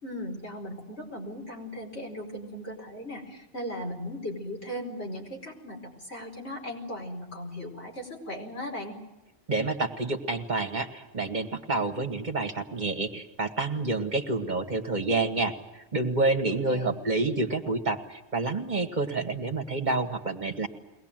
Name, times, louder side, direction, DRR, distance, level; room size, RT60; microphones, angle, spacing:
voice 1, 0.0-8.9 16.7-17.0, equal, 85° left, 0 dB, 5.2 m, -37 dB
voice 2, 9.5-20.7, right 3 dB, 45° right, 6 dB, 1.9 m, -28 dB
23.0 x 19.0 x 9.0 m, 1.0 s
omnidirectional pair, 1.1 m